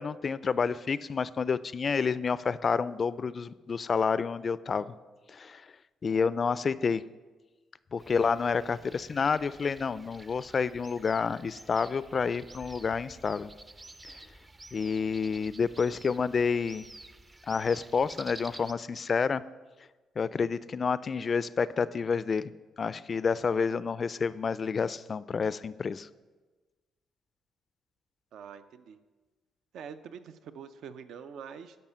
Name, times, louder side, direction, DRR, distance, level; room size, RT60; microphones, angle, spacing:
voice 1, 0.0-4.9 5.3-5.6 6.0-7.0 7.9-13.5 14.7-16.8 17.5-19.4 20.2-22.4 22.8-26.1, left 5 dB, 40° left, 17 dB, 0.3 m, -29 dB
sound 1, 8.0-18.7, right 2 dB, 20° right, 0.4 m, -50 dB
voice 2, 28.3-29.0 29.7-31.8, right 7 dB, 75° right, 11 dB, 0.5 m, -45 dB
12.0 x 5.5 x 5.6 m, 1.3 s
cardioid pair, 90°, 0 cm